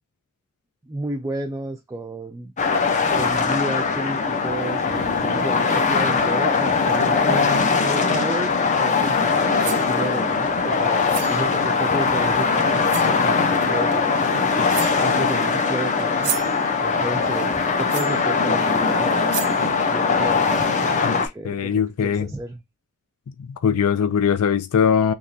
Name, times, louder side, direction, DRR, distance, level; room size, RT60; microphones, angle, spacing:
voice 1, 0.9-2.5 3.1-7.5 7.8-14.5 15.0-16.3 16.8-22.6, right 2 dB, 15° right, 0.4 m, -32 dB
sound 1, 2.6-21.3, left 4 dB, 35° left, 0.6 m, -21 dB
sound 2, 9.4-9.9 11.1-11.4 12.4-12.5 12.9-13.2 14.2-14.3 14.7-15.1 16.0-16.6 17.9-18.2 18.9-19.0 19.3-19.7, right 15 dB, 80° right, 0.4 m, -31 dB
voice 2, 21.0-22.3 23.4-25.1, left 7 dB, 70° left, 0.4 m, -21 dB
3.5 x 2.9 x 2.6 m
head